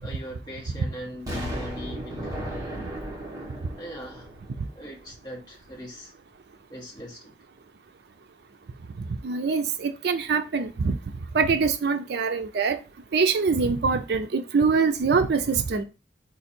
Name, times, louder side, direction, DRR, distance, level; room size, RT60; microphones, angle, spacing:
voice 1, 0.0-2.9 3.3-4.3 4.7-6.1 6.7-7.3, equal, 20° left, -1 dB, 1.3 m, -40 dB
Explosion, 1.3-5.2 5.6-5.7, right 1 dB, 20° right, 1.2 m, -35 dB
voice 2, 9.2-11.0 11.3-12.8 13.1-15.8, right 5 dB, 60° right, 8 dB, 0.4 m, -24 dB
4.8 x 2.5 x 4.3 m, 0.31 s
head